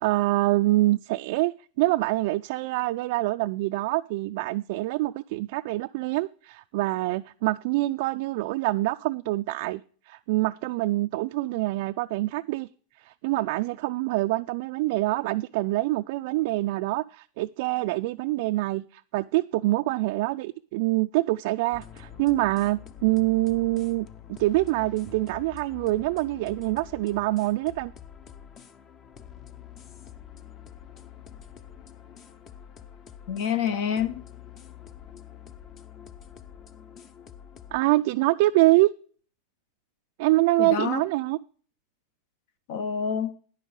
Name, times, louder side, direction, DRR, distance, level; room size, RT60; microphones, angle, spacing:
voice 1, 0.0-9.8 10.1-12.7 13.0-27.9 37.7-38.9 40.2-41.4, right 19 dB, 60° right, 0.3 m, -25 dB
sound 1, 21.7-37.8, left 9 dB, 30° left, 0.7 m, -47 dB
voice 2, 33.3-34.2 40.6-41.0 42.7-43.3, left 7 dB, 60° left, 0.8 m, -27 dB
10.5 x 5.4 x 6.3 m
supercardioid pair, 145°, 0 cm